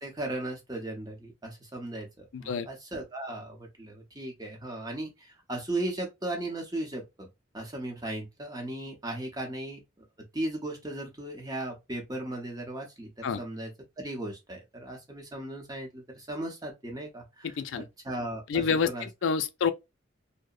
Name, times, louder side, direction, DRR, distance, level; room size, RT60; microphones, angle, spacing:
voice 1, 0.0-7.3 7.5-9.8 10.3-13.7 14.0-19.1, right 1 dB, 20° right, 0.7 m, -37 dB
voice 2, 2.3-2.7 13.2-13.4 17.6-17.9 18.5-19.7, left 5 dB, 85° left, 0.4 m, -28 dB
2.7 x 2.0 x 2.3 m
head